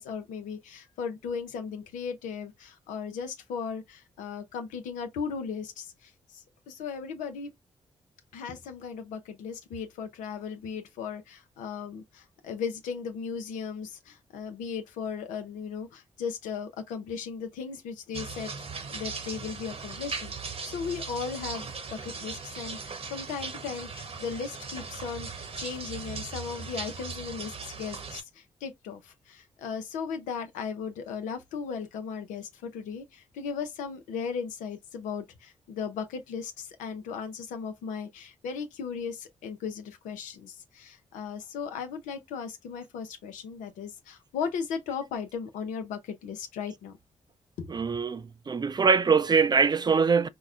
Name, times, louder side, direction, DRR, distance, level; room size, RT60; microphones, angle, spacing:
voice 1, 0.0-5.9 6.3-7.5 8.3-18.5 18.9-47.0 47.6-47.7, left 6 dB, 90° left, 0.6 m, -37 dB
sound 1, 18.1-28.2, right 5 dB, 50° right, 1.0 m, -38 dB
voice 2, 47.7-50.3, right 5 dB, 35° right, 0.4 m, -23 dB
4.6 x 2.2 x 2.4 m
supercardioid pair, 45°, 13 cm